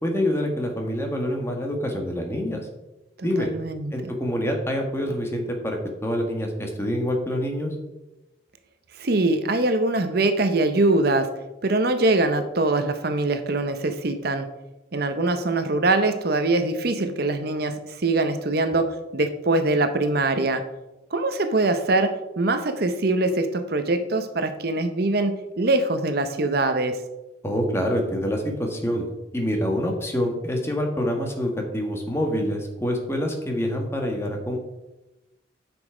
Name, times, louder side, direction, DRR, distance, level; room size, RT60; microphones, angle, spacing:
voice 1, 0.0-2.7 3.2-3.5 3.9-7.7 27.4-29.0 29.3-34.6, equal, 15° left, 2 dB, 1.5 m, -26 dB
voice 2, 3.2-4.1 8.9-11.3 11.6-14.5 14.9-20.6 21.1-27.0, right 2 dB, 55° right, 8 dB, 0.8 m, -23 dB
9.3 x 6.2 x 5.0 m, 0.99 s
head